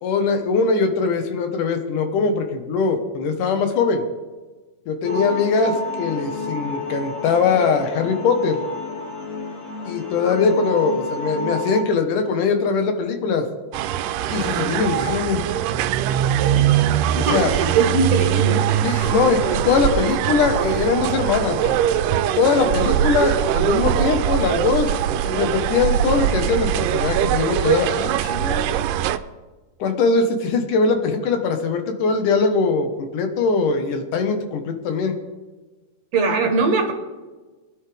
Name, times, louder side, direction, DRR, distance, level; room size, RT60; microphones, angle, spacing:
voice 1, 0.0-4.0 4.9-8.6 9.9-13.5 14.3-15.4 17.3-17.5 18.8-21.8 22.4-24.9 25.3-28.7 29.8-35.2, left 4 dB, 80° left, 5 dB, 2.9 m, -21 dB
sound 1, 5.0-11.8, left 3 dB, 65° left, 3.6 m, -29 dB
sound 2, 13.7-29.2, right 11 dB, 90° right, 2.2 m, -21 dB
voice 2, 17.1-18.8 36.1-36.9, right 4 dB, 60° right, 3 dB, 2.3 m, -21 dB
22.0 x 11.0 x 3.5 m, 1.3 s
omnidirectional pair, 3.6 m